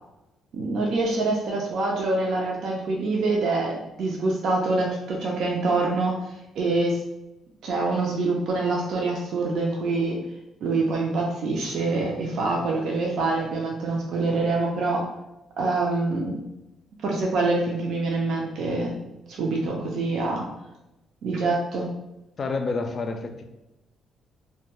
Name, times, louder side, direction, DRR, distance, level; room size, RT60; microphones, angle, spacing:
voice 1, 0.5-6.2 6.6-7.0 7.6-10.2 10.6-15.1 15.6-16.4 17.0-19.0 19.3-20.5 21.2-21.9, right 3 dB, 75° right, -1 dB, 0.4 m, -25 dB
voice 2, 22.4-23.4, left 3 dB, 45° left, 5 dB, 0.4 m, -28 dB
2.2 x 2.2 x 2.9 m, 0.91 s
cardioid pair, 90°, 0 cm